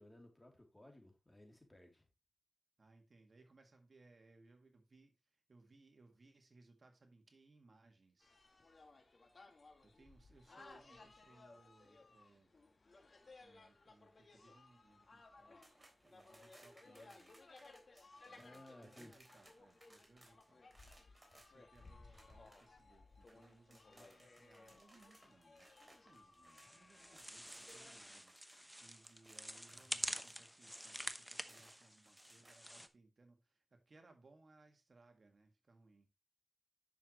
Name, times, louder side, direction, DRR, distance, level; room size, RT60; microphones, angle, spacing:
voice 1, 0.0-2.0 18.4-19.1, left 1 dB, 20° left, 3.0 m, -59 dB
voice 2, 2.8-8.3 9.8-12.5 13.4-15.6 16.0-17.4 18.2-20.7 21.3-25.7 26.0-36.1, right 3 dB, 65° right, 1.8 m, -67 dB
sound 1, 8.2-28.0, left 3 dB, 65° left, 2.1 m, -62 dB
sound 2, 15.6-27.8 28.1-32.7, right 1 dB, 25° right, 3.6 m, -66 dB
sound 3, 26.5-32.9, equal, ahead, 0.8 m, -47 dB
10.5 x 6.5 x 3.0 m
wide cardioid pair, 60°, 0 cm